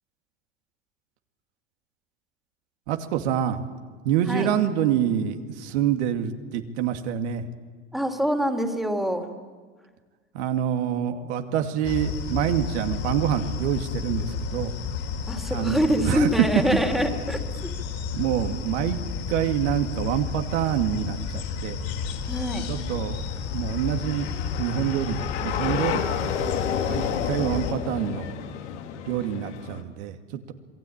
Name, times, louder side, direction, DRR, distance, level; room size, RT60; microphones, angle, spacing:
voice 1, 2.9-3.7 4.0-7.5 10.3-14.7 15.5-16.3 16.7-16.8 18.1-19.0 19.3-21.8 22.7-24.3 24.6-26.6 26.9-28.3 29.1-30.5, right 9 dB, 65° right, 5 dB, 2.4 m, -27 dB
voice 2, 7.9-9.3 15.3-17.4 22.3-22.6, equal, ahead, 4 dB, 3.3 m, -25 dB
sound 1, 11.8-27.7, left 6 dB, 40° left, 4.1 m, -32 dB
sound 2, 22.0-29.8, left 8 dB, 70° left, 3.0 m, -31 dB
27.0 x 22.0 x 8.9 m, 1.5 s
hypercardioid pair, 90°, 36 cm